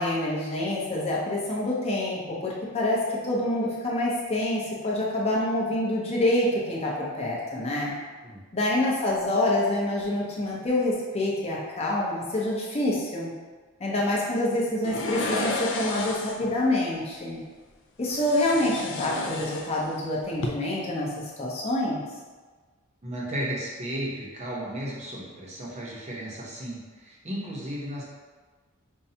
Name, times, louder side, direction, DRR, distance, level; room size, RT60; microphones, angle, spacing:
voice 1, 0.0-3.0 3.2-7.9 8.5-13.3 13.8-17.4 18.0-21.1 21.4-22.0, left 1 dB, 30° left, -5 dB, 0.8 m, -26 dB
sound 1, 14.8-16.5 18.1-20.0 20.3-20.5, left 2 dB, 60° left, 0.4 m, -32 dB
voice 2, 23.0-28.0, right 1 dB, 30° right, -5 dB, 0.8 m, -34 dB
5.4 x 2.3 x 2.8 m, 1.4 s
head